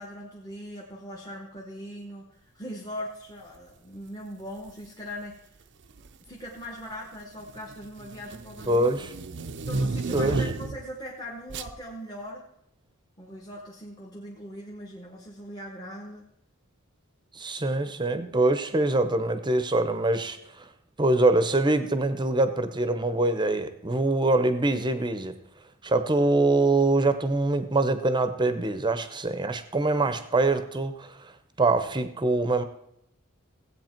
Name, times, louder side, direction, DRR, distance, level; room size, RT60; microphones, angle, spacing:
voice 1, 0.0-5.5 6.2-9.0 9.7-12.4 13.2-16.3 30.0-30.2, equal, 20° left, -2 dB, 1.3 m, -40 dB
sound 1, 4.6-4.9 5.8-6.3 6.6-10.9 11.5-11.8, right 3 dB, 55° right, 0.6 m, -33 dB
voice 2, 8.7-9.1 10.1-10.5 17.3-20.7 21.0-25.3 25.8-31.3 31.6-32.6, right 2 dB, 20° right, 10 dB, 0.8 m, -24 dB
16.0 x 8.3 x 4.5 m, 0.77 s
head